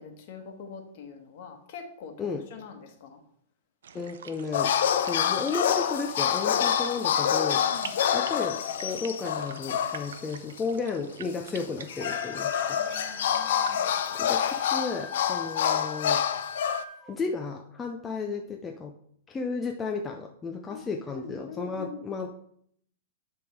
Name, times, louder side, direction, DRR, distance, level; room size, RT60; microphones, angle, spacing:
voice 1, 0.0-3.2 7.6-8.0 12.8-13.9 20.7-20.8 21.1-22.0, left 6 dB, 45° left, 4 dB, 1.3 m, -44 dB
sound 1, 3.8-14.8, right 7 dB, 85° right, 0.7 m, -46 dB
voice 2, 3.9-4.7 5.1-7.6 8.1-12.8 14.2-16.2 17.1-18.9 19.3-22.3, left 4 dB, 10° left, 2 dB, 0.5 m, -33 dB
sound 2, 4.5-10.3 10.6-10.7 11.5-16.8, left 9 dB, 65° left, 0.5 m, -27 dB
Wind instrument woodwind instrument, 11.8-17.1, left 2 dB, 10° right, 0.9 m, -43 dB
10.5 x 3.5 x 4.6 m, 0.67 s
hypercardioid pair, 160°, 0 cm